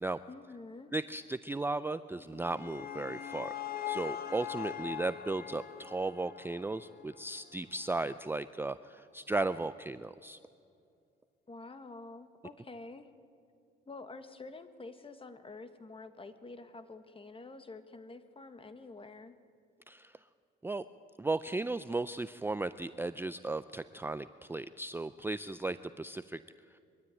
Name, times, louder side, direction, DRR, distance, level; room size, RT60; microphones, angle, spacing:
voice 1, 0.3-0.9 11.5-13.1 13.9-19.3, left 3 dB, 25° left, 10 dB, 1.5 m, -48 dB
voice 2, 0.9-3.5 3.9-10.4 19.9-20.1 20.6-20.8 21.2-26.4, right 2 dB, 10° right, 13 dB, 0.4 m, -36 dB
sound 1, 2.2-7.4, left 10 dB, 50° left, 1.2 m, -41 dB
23.0 x 13.0 x 9.1 m, 2.5 s
cardioid pair, 90°, 20 cm